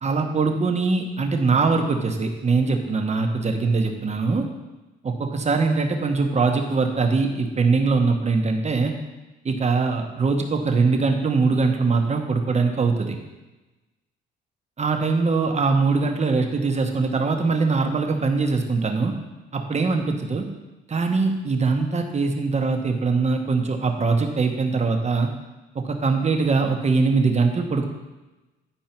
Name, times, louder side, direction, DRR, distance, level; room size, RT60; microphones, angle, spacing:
voice 1, 0.0-4.4 5.0-8.9 9.4-13.2 14.8-19.1 19.5-20.4 20.9-25.3 25.7-27.9, right 4 dB, 35° right, 3 dB, 1.1 m, -22 dB
10.5 x 4.6 x 4.5 m, 1.1 s
cardioid pair, 90°, 20 cm